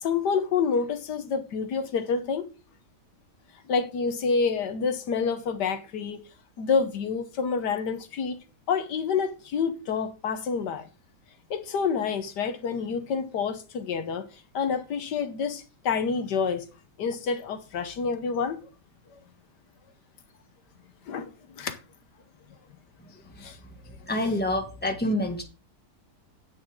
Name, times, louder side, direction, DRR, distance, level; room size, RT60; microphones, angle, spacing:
voice 1, 0.0-2.5 3.7-6.2 6.6-8.4 8.7-10.9 11.5-14.3 14.5-16.7 17.0-18.6 19.1-19.2 21.1-21.8 23.4-23.6, left 5 dB, 80° left, 1.6 m, -28 dB
voice 2, 24.1-25.4, left 1 dB, 5° left, 1.9 m, -27 dB
9.4 x 8.9 x 3.7 m
omnidirectional pair, 1.8 m